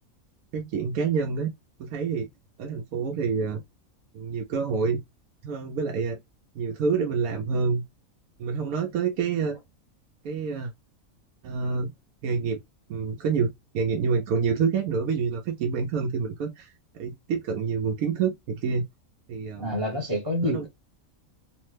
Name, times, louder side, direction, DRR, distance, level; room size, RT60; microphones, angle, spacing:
voice 1, 0.5-1.5 1.8-2.3 2.6-3.6 4.1-5.0 5.4-6.2 6.5-7.8 8.4-9.6 10.2-10.7 11.4-11.9 12.2-12.6 12.9-18.8 19.3-19.8 20.4-20.7, right 5 dB, 85° right, 1.0 m, -27 dB
voice 2, 19.6-20.7, left 1 dB, 25° right, 0.6 m, -27 dB
3.1 x 2.1 x 3.1 m
omnidirectional pair, 1.4 m